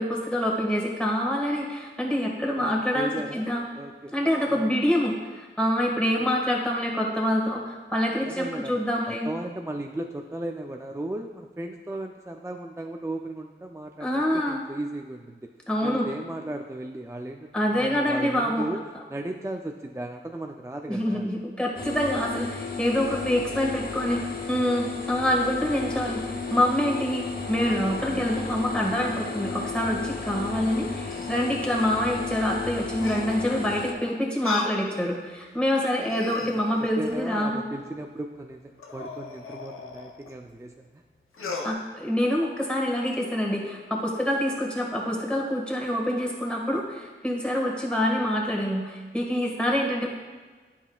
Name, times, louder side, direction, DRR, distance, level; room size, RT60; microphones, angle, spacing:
voice 1, 0.0-3.6 4.1-9.3 14.0-14.6 15.7-16.1 17.5-18.7 20.9-37.6 41.6-50.1, equal, 5° left, -2 dB, 1.6 m, -26 dB
voice 2, 2.6-4.1 4.5-4.8 6.2-6.3 8.2-8.8 9.1-15.5 15.8-18.8 19.1-21.3 36.4-41.0, right 1 dB, 15° right, 3 dB, 0.4 m, -36 dB
sound 1, 21.8-33.9, left 4 dB, 45° left, 0.9 m, -34 dB
sound 2, 30.6-32.0 33.0-33.5 34.4-34.8 35.4-35.5 35.9-37.3 38.8-40.3 41.3-41.7, left 3 dB, 85° left, 0.6 m, -37 dB
9.5 x 5.5 x 2.3 m, 1.4 s
cardioid pair, 40°, 21 cm